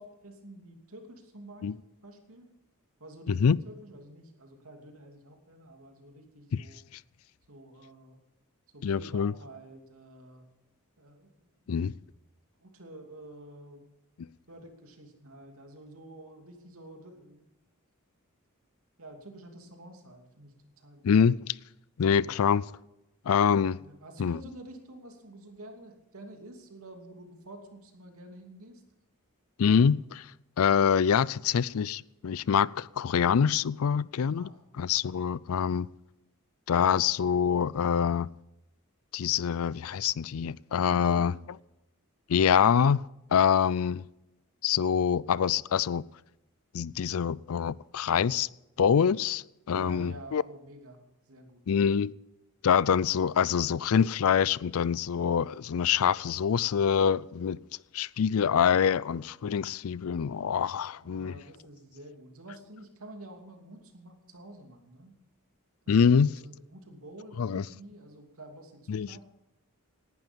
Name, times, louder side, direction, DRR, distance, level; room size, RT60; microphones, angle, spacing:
voice 1, 0.0-1.7 2.0-2.5 3.0-6.8 7.5-8.2 8.7-10.5 11.0-11.9 12.6-13.9 14.5-17.5 19.0-21.2 22.2-22.5 23.8-28.8 34.4-34.6 40.9-41.3 49.7-51.6 61.0-65.1 65.9-69.2, right 1 dB, 75° right, 2.7 m, -49 dB
voice 2, 3.3-3.6 6.5-6.6 8.8-9.3 11.7-11.9 21.0-21.5 22.0-22.6 23.3-23.8 24.2-24.4 29.6-30.3 30.6-35.9 36.7-38.3 39.1-41.3 42.3-43.0 43.3-44.0 44.6-46.0 46.7-48.5 48.8-50.4 51.7-52.1 52.6-57.6 57.9-61.3 65.9-66.3 67.4-67.7 68.9-69.1, left 7 dB, 75° left, 0.4 m, -25 dB
18.5 x 11.5 x 5.3 m
head